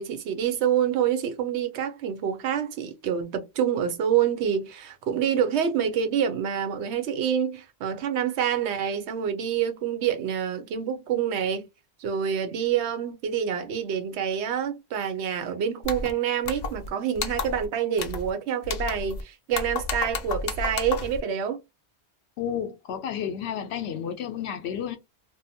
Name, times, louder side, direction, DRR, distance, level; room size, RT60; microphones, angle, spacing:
voice 1, 0.0-11.7 12.0-21.6, right 8 dB, 90° right, 0.9 m, -27 dB
sound 1, 15.8-16.1 16.5-16.9 17.2-17.7 18.0-18.3 18.6-19.2 19.5-21.2, left 4 dB, 50° left, 0.5 m, -32 dB
voice 2, 22.4-25.0, left 8 dB, 85° left, 0.9 m, -31 dB
2.7 x 2.1 x 2.7 m
omnidirectional pair, 1.1 m